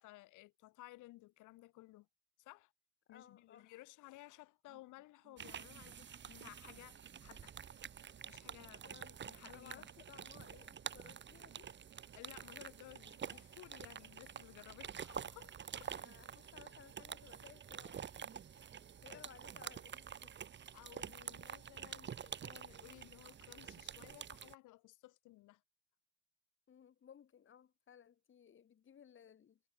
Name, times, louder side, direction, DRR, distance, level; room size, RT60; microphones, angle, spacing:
voice 1, 0.0-2.1 2.4-2.7 3.1-7.6 8.2-8.8 9.2-9.9 12.1-16.0 19.1-19.3 20.7-25.6, left 19 dB, 80° left, 1.7 m, -57 dB
voice 2, 3.1-3.7 8.8-11.7 15.9-18.7 19.0-20.4 26.7-29.6, left 8 dB, 40° left, 4.2 m, -60 dB
sound 1, 4.7-13.3, right 12 dB, 55° right, 3.4 m, -71 dB
sound 2, 5.4-24.5, right 8 dB, 35° right, 2.4 m, -49 dB
cardioid pair, 125°, 31 cm